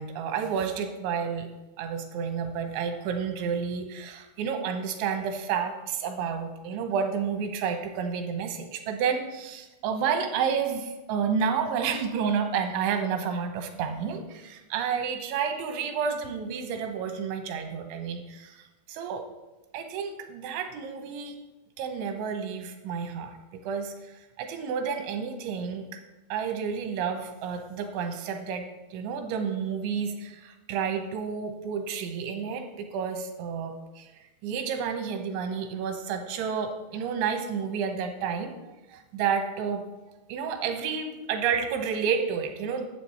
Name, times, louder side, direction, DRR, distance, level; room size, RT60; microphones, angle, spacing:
voice 1, 0.0-1.5 1.8-19.2 19.7-21.4 21.8-26.0 26.3-39.8 40.3-42.9, right 6 dB, 85° right, 6 dB, 3.3 m, -30 dB
11.5 x 7.8 x 4.2 m, 1.1 s
omnidirectional pair, 5.3 m